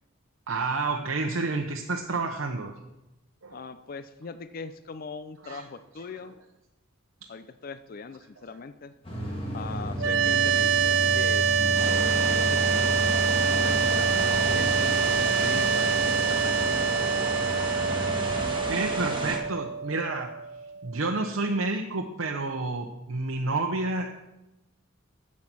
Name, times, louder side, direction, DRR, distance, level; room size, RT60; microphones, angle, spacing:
voice 1, 0.5-2.7 3.4-3.6 5.4-5.7 7.2-7.3 18.7-20.4 20.8-24.2, right 3 dB, 80° right, 2 dB, 0.9 m, -30 dB
voice 2, 3.5-6.4 7.3-8.9 9.5-12.9 13.4-16.8, left 4 dB, 45° left, 12 dB, 0.4 m, -41 dB
sound 1, 9.0-18.5, equal, 30° left, 2.4 m, -33 dB
sound 2, 10.0-21.1, right 6 dB, 65° right, 0.5 m, -26 dB
sound 3, 11.7-19.4, right 2 dB, 25° right, 1.9 m, -32 dB
10.5 x 7.5 x 6.2 m, 0.94 s
head